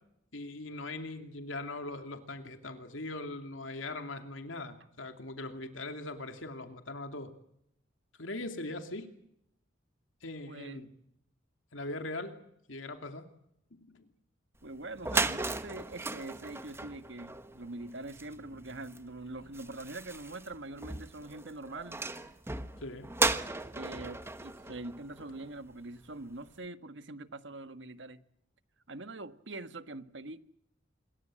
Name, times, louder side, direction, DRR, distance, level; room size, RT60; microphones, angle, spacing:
voice 1, 0.3-7.3 8.2-9.1 10.2-10.9 11.7-12.4 12.7-13.3 13.7-14.1 22.8-23.1, left 2 dB, 90° left, 2.7 m, -40 dB
voice 2, 10.5-10.8 14.6-22.0 23.7-28.2 28.9-30.4, right 2 dB, 65° right, 1.5 m, -43 dB
sound 1, 14.7-14.8 14.9-25.7, right 3 dB, 15° right, 1.3 m, -36 dB
27.0 x 22.0 x 7.7 m
head